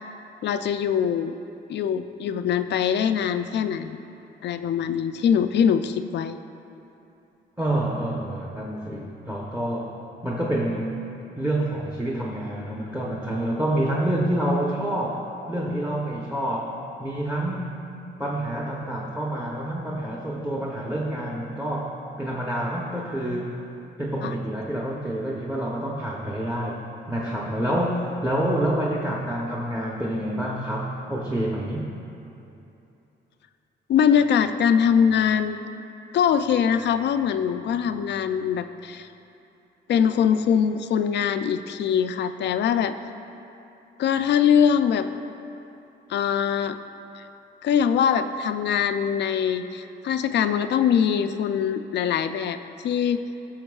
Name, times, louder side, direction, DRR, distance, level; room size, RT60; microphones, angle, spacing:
voice 1, 0.4-1.4 1.7-4.0 4.4-6.4 24.2-24.4 33.9-35.6 36.1-39.1 39.9-42.9 44.0-45.1 46.1-46.8 47.2-47.3 47.6-52.6 52.8-53.2, left 8 dB, 60° left, 10 dB, 0.4 m, -22 dB
voice 2, 7.6-9.9 10.2-11.0 11.4-16.7 17.0-17.9 18.2-23.6 24.0-31.9, right 1 dB, 10° right, -3 dB, 0.8 m, -27 dB
17.0 x 6.3 x 2.3 m, 2.8 s
cardioid pair, 90°, 20 cm